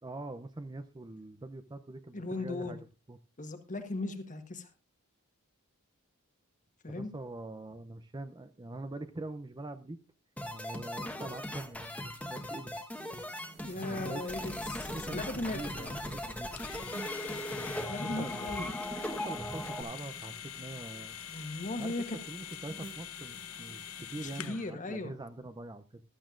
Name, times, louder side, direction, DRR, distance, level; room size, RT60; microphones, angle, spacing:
voice 1, 0.0-2.8 3.1-3.2 6.9-10.0 10.5-12.8 13.7-14.2 14.9-16.6 18.2-18.5 19.2-21.2 21.8-21.9 22.3-26.0, right 2 dB, 20° right, 10 dB, 0.5 m, -43 dB
voice 2, 2.1-2.8 3.4-4.7 6.8-7.1 13.6-16.0 17.9-18.7 21.3-22.2 24.2-25.1, left 2 dB, 35° left, 7 dB, 1.4 m, -37 dB
sound 1, 10.4-19.8, left 1 dB, 5° left, 1.2 m, -39 dB
sound 2, 12.9-24.5, right 3 dB, 45° right, 1.4 m, -53 dB
sound 3, 16.6-24.7, left 11 dB, 65° left, 0.6 m, -44 dB
15.0 x 12.5 x 2.5 m, 0.30 s
head